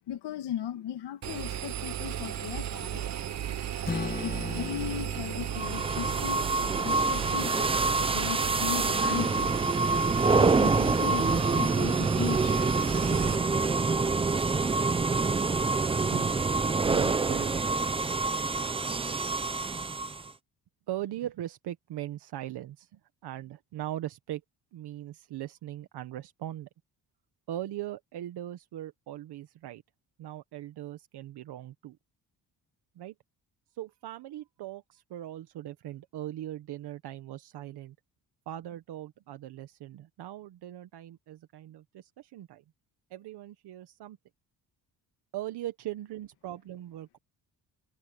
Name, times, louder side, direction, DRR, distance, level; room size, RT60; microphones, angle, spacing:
voice 1, 0.1-3.2 3.9-6.4 6.8-9.5 10.3-12.6 13.1-13.5, left 10 dB, 80° left, 1.8 m, -37 dB
Engine, 1.2-13.4, right 10 dB, 40° right, 1.0 m, -35 dB
Strum, 3.8-8.0, left 4 dB, 20° left, 1.7 m, -40 dB
sound 1, 5.5-20.3, right 3 dB, 15° right, 0.5 m, -26 dB
voice 2, 16.8-17.5 20.9-24.4 24.7-26.7 27.5-29.8 30.2-32.0 32.9-33.1 33.7-37.9 38.5-42.6 43.1-44.2 45.3-47.2, right 13 dB, 75° right, 1.2 m, -40 dB
cardioid pair, 155°, 40 cm